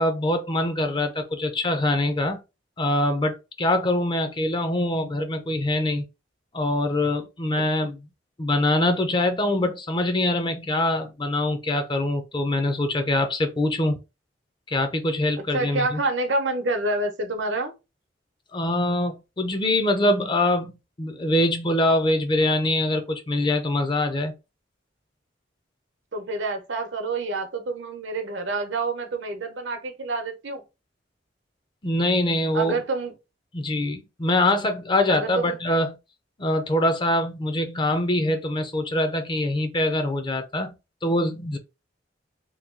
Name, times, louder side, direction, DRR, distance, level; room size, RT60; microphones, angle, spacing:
voice 1, 0.0-2.4 2.8-6.0 6.5-8.0 8.4-14.0 14.7-16.0 18.5-20.7 21.0-24.3 31.8-32.8 33.5-36.0 36.4-40.7 41.0-41.6, left 1 dB, 25° left, 0.5 m, -24 dB
voice 2, 15.5-17.7 26.1-30.6 32.5-33.1 35.1-35.6, right 2 dB, 80° right, 0.8 m, -27 dB
2.9 x 2.3 x 3.6 m
head